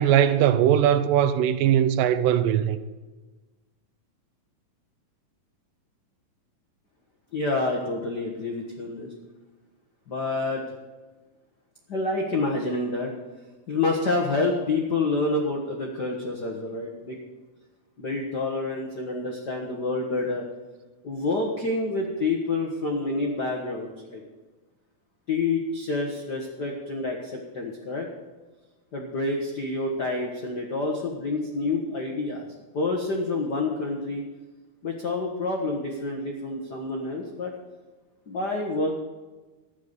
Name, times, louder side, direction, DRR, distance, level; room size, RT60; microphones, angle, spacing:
voice 1, 0.0-2.8, right 10 dB, 80° right, 2.1 m, -20 dB
voice 2, 7.3-9.1 10.1-10.6 11.9-13.1 13.7-17.2 18.0-20.4 21.0-24.2 25.3-28.1 28.9-32.5 32.7-34.2 34.8-37.5 38.3-39.0, left 3 dB, 85° left, 0.9 m, -28 dB
12.5 x 9.5 x 5.3 m
omnidirectional pair, 4.1 m